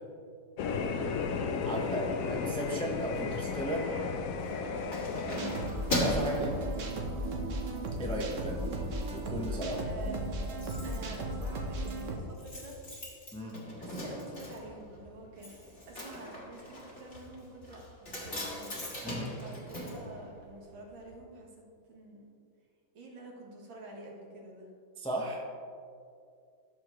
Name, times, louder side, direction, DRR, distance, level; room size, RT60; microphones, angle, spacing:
sound 1, 0.6-5.7, left 5 dB, 80° left, 0.7 m, -34 dB
voice 1, 0.9-1.2 1.6-2.1 4.6-5.5 7.3-7.6 9.8-10.2 10.8-12.8 13.5-15.6 15.9-17.8 18.1-18.7 19.4-22.3 22.9-24.7, right 2 dB, 80° right, -2 dB, 2.3 m, -48 dB
voice 2, 1.7-4.0 6.0-6.6 8.0-8.7 9.1-9.9 13.3-13.5 19.0-19.3 25.0-25.4, equal, 5° left, -2 dB, 0.4 m, -35 dB
Keys jangling, 4.3-7.4 7.8-8.1 8.4-9.1 9.4-9.5 9.7-9.8 10.0-20.8 21.1-21.2, left 1 dB, 35° left, 1.9 m, -39 dB
sound 2, 5.3-12.2, right 1 dB, 50° right, 1.1 m, -35 dB
13.0 x 6.8 x 3.1 m, 2.4 s
omnidirectional pair, 2.1 m